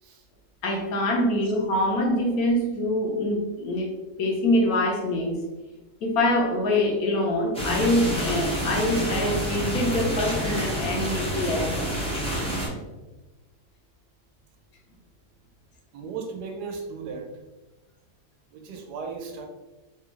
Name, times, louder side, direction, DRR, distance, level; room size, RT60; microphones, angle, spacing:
voice 1, 0.6-3.9 4.2-5.4 6.0-11.8, left 1 dB, 70° left, 1 dB, 1.1 m, -24 dB
sound 1, 7.5-12.7, equal, 10° left, 0.4 m, -28 dB
voice 2, 15.9-17.3 18.5-19.5, right 5 dB, 90° right, 3 dB, 1.2 m, -36 dB
3.4 x 2.4 x 3.0 m, 1.1 s
omnidirectional pair, 1.7 m